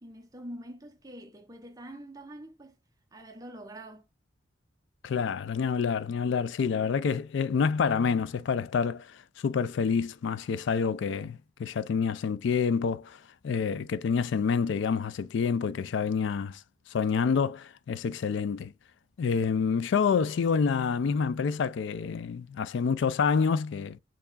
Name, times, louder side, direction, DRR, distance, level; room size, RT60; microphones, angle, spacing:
voice 1, 0.0-2.8 3.1-4.1, right 1 dB, 20° right, 0.7 m, -45 dB
voice 2, 5.0-13.2 13.4-16.6 16.9-18.7 19.2-24.0, left 6 dB, 70° left, 0.3 m, -28 dB
4.4 x 3.0 x 2.4 m
head